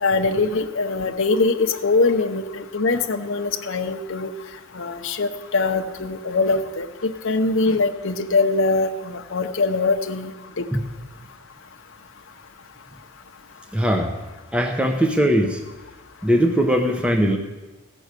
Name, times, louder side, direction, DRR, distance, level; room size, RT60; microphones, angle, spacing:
voice 1, 0.0-4.3 4.7-10.7, left 3 dB, 60° left, 5 dB, 0.7 m, -22 dB
voice 2, 13.7-14.2 14.5-15.6 16.2-17.4, equal, 5° right, 3 dB, 0.6 m, -20 dB
14.5 x 6.2 x 8.1 m, 1.2 s
head